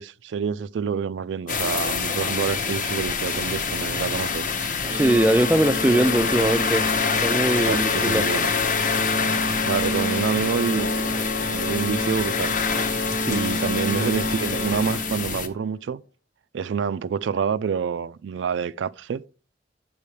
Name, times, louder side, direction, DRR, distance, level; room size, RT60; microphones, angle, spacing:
voice 1, 0.0-4.5 7.6-8.5 9.7-10.9 11.4-12.5 13.3-16.0 16.5-19.2, right 6 dB, 80° right, 0.4 m, -27 dB
sound 1, 1.5-15.5, left 5 dB, 45° left, 0.8 m, -26 dB
voice 2, 4.8-6.9 7.2-8.3 13.3-13.4, right 1 dB, 10° right, 0.4 m, -21 dB
Organ, 4.9-15.6, left 1 dB, 80° left, 0.9 m, -29 dB
9.1 x 6.9 x 3.3 m
head